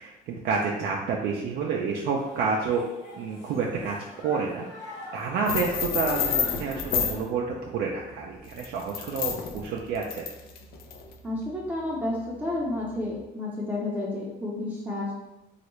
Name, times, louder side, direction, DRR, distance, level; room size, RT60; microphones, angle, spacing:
voice 1, 0.0-2.8 3.2-10.3, right 5 dB, 70° right, -1 dB, 0.4 m, -29 dB
sound 1, 2.2-7.2, left 2 dB, 80° left, 0.9 m, -45 dB
sound 2, 5.5-7.2 8.4-11.1, left 7 dB, 65° left, 0.4 m, -29 dB
voice 2, 11.2-15.1, left 2 dB, 10° right, -6 dB, 0.6 m, -31 dB
3.1 x 2.4 x 3.0 m, 1.0 s
cardioid pair, 110°, 17 cm